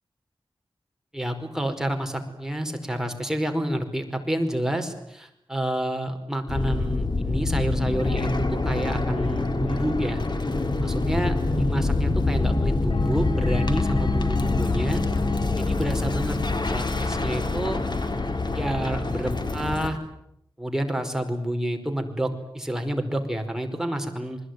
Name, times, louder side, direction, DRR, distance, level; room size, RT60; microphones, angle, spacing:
voice 1, 1.1-10.2 10.8-15.0 15.6-16.4 16.7-17.8 18.5-20.0 20.6-24.4, right 1 dB, 5° right, 4 dB, 4.9 m, -29 dB
sound 1, 6.5-19.9, left 3 dB, 55° left, 3.5 m, -25 dB
28.0 x 21.0 x 9.5 m, 0.76 s
wide cardioid pair, 70°, 9 cm